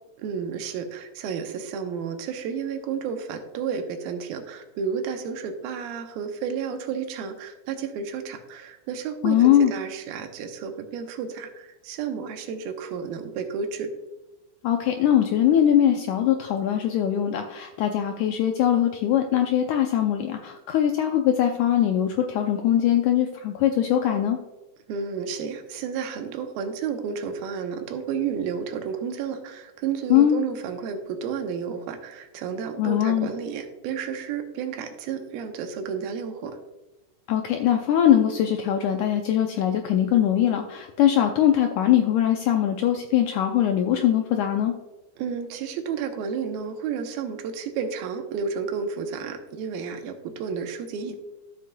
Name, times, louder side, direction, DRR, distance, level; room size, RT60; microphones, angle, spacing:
voice 1, 0.2-13.9 24.9-36.6 45.2-51.2, right 6 dB, 90° right, 6 dB, 2.6 m, -31 dB
voice 2, 9.2-9.7 14.6-24.4 30.1-30.4 32.8-33.3 37.3-44.7, left 10 dB, 85° left, 4 dB, 1.7 m, -21 dB
12.0 x 7.4 x 2.3 m, 1.0 s
omnidirectional pair, 4.1 m